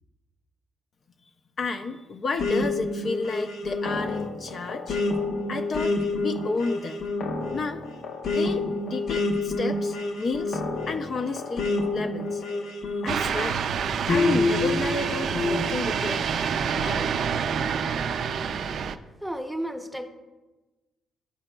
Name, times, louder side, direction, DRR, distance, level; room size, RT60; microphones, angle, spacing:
voice 1, 1.6-5.0 5.5-7.0 7.5-7.8 8.3-10.6 10.9-12.4 12.8-13.7 14.1-16.3 16.7-17.1, left 3 dB, 50° left, 6 dB, 0.4 m, -31 dB
sound 1, 2.4-13.5 14.1-15.6, left 3 dB, 70° left, 0.8 m, -28 dB
sound 2, 13.1-19.0, right 7 dB, 65° right, 0.3 m, -27 dB
voice 2, 19.2-20.1, equal, ahead, 4 dB, 0.7 m, -32 dB
11.0 x 3.9 x 2.2 m, 1.2 s
cardioid pair, 90°, 0 cm